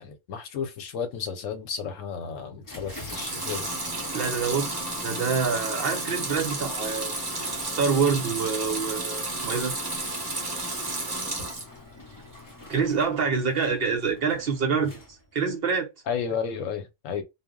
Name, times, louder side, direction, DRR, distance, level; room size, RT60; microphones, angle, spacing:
voice 1, 0.0-3.7 16.1-17.2, left 6 dB, 85° left, 1.0 m, -32 dB
sound 1, 2.6-15.4, left 3 dB, 25° left, 0.5 m, -47 dB
Water tap faucet / Sink (filling or washing) / Liquid, 2.8-11.8 12.2-12.9, right 2 dB, 25° right, 0.7 m, -32 dB
voice 2, 4.1-7.2 7.6-9.7 12.7-15.9, right 5 dB, 60° right, 0.7 m, -26 dB
2.2 x 2.0 x 3.5 m
omnidirectional pair, 1.3 m